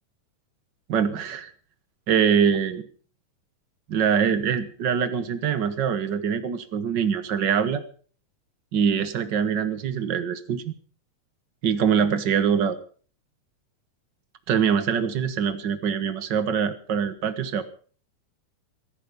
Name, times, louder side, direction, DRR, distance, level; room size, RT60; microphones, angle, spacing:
voice 1, 0.9-1.5 2.1-2.8 3.9-7.8 8.7-10.7 11.6-12.8 14.5-17.6, right 7 dB, 55° right, 12 dB, 1.2 m, -24 dB
16.5 x 14.5 x 5.3 m, 0.43 s
omnidirectional pair, 3.6 m